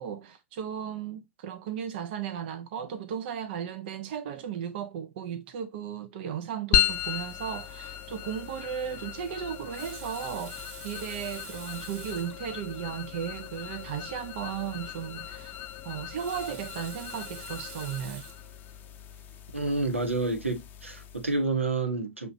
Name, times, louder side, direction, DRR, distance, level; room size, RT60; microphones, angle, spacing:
voice 1, 0.0-15.6 15.8-18.3, right 8 dB, 55° right, 0.6 m, -35 dB
sound 1, 6.7-21.4, left 11 dB, 30° left, 0.6 m, -35 dB
Water tap faucet, 9.5-12.4 13.2-13.3 13.6-13.7 15.9-18.5 19.2-19.4, right 4 dB, 35° right, 1.4 m, -47 dB
voice 2, 19.5-22.3, right 3 dB, 85° right, 0.9 m, -29 dB
6.5 x 2.9 x 2.5 m
figure-of-eight pair, 95°, 7 cm